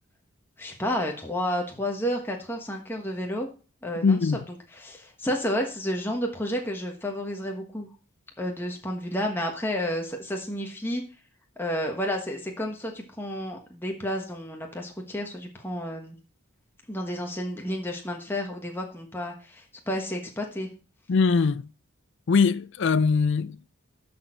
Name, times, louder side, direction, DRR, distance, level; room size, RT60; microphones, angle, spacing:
voice 1, 0.6-3.5 3.8-4.3 4.8-7.9 8.4-11.0 11.6-16.2 16.9-20.7, equal, 10° left, 1.3 m, -31 dB
voice 2, 4.0-4.5 21.1-21.7 22.3-23.7, left 5 dB, 55° left, 0.4 m, -22 dB
12.5 x 4.4 x 4.5 m
head